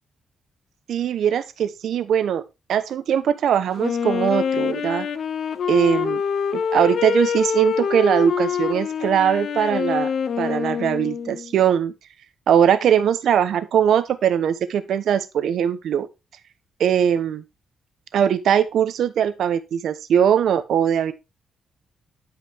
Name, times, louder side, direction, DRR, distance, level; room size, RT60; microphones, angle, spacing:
voice 1, 0.9-2.4 2.7-5.1 5.7-6.2 6.5-10.1 10.4-11.9 12.5-16.1 16.8-17.4 18.1-21.1, right 9 dB, 75° right, 1.0 m, -20 dB
Wind instrument woodwind instrument, 3.8-11.5, left 7 dB, 60° left, 0.7 m, -25 dB
11.5 x 5.1 x 3.5 m
cardioid pair, 115°, 0 cm